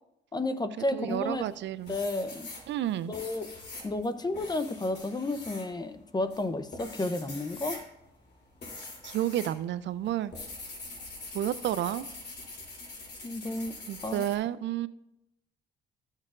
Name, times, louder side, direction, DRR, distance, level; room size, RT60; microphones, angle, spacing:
voice 1, 0.3-1.5 1.9-2.5 3.1-3.5 3.8-7.8 13.2-13.7 14.0-14.3, left 2 dB, 20° left, 11 dB, 0.7 m, -32 dB
voice 2, 0.9-1.9 2.7-3.1 9.0-10.3 11.3-12.1 13.9-14.9, right 12 dB, 65° right, 15 dB, 0.4 m, -31 dB
sound 1, 1.1-1.6 1.9-9.6 9.8-14.4, left 2 dB, 55° left, 2.9 m, -44 dB
13.5 x 6.4 x 2.5 m, 0.84 s
cardioid pair, 90°, 20 cm